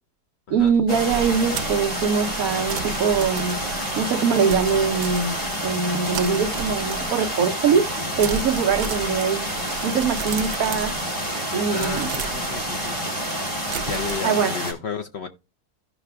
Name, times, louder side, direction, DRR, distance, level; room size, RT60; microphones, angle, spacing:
voice 1, 0.5-3.6 4.0-5.4 5.6-7.9 8.2-9.5 9.8-10.9 11.5-12.1 14.2-14.5, right 6 dB, 65° right, 1.1 m, -22 dB
sound 1, 0.6-5.7 6.0-7.4 7.7-7.9 8.2-11.4 11.8-14.2, right 7 dB, 85° right, 1.3 m, -35 dB
sound 2, 0.9-14.7, equal, 5° left, 3.1 m, -28 dB
voice 2, 11.7-13.0 13.8-15.3, left 6 dB, 60° left, 0.7 m, -32 dB
15.5 x 5.7 x 2.3 m
omnidirectional pair, 1.7 m